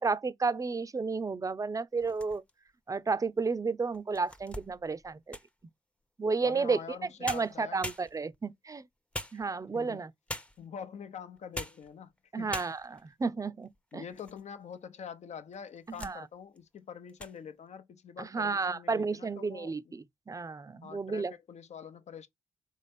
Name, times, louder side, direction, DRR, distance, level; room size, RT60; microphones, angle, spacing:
voice 1, 0.0-2.4 2.9-5.4 6.2-6.8 7.2-8.8 9.3-10.1 12.3-14.0 16.0-16.2 18.2-21.3, right 4 dB, 25° right, 0.5 m, -32 dB
sound 1, 2.0-2.7 3.3-3.4 3.9-5.6 6.9-7.0 7.2-8.5 9.1-9.8 10.3-10.7 11.4-11.9 12.2-12.3 12.5-13.1 13.6-14.4 14.7-14.8 15.5-16.2 16.6-16.8 17.1-17.4, left 1 dB, 10° left, 0.7 m, -42 dB
voice 2, 6.4-7.8 9.7-10.0 10.6-12.1 12.4-12.7 13.9-19.9 20.8-22.3, left 7 dB, 65° left, 0.7 m, -45 dB
4.1 x 3.3 x 3.5 m
supercardioid pair, 55°, 13 cm